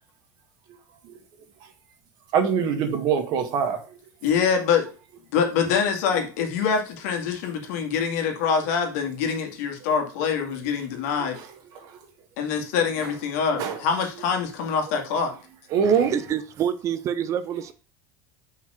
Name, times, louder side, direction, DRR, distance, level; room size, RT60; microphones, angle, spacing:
voice 1, 2.3-3.8 11.7-11.9 13.6-13.8 15.7-16.2, right 7 dB, 50° right, 1.8 m, -23 dB
voice 2, 4.2-4.9 5.3-11.4 12.4-15.3, left 6 dB, 75° left, 2.1 m, -25 dB
voice 3, 15.8-17.7, right 9 dB, 35° right, 0.5 m, -27 dB
5.5 x 4.5 x 6.2 m
supercardioid pair, 130°, 9 cm